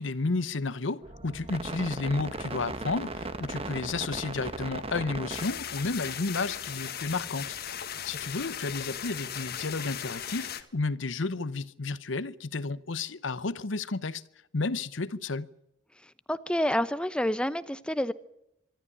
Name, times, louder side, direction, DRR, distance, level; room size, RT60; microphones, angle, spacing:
voice 1, 0.0-14.2 14.5-15.5, left 3 dB, 70° left, 0.9 m, -32 dB
sound 1, 1.0-7.6 7.9-8.0, right 2 dB, 30° right, 1.4 m, -38 dB
sound 2, 5.3-10.6, left 9 dB, 50° left, 1.5 m, -37 dB
voice 2, 16.3-18.1, left 1 dB, 5° left, 0.8 m, -28 dB
25.0 x 12.5 x 9.9 m
head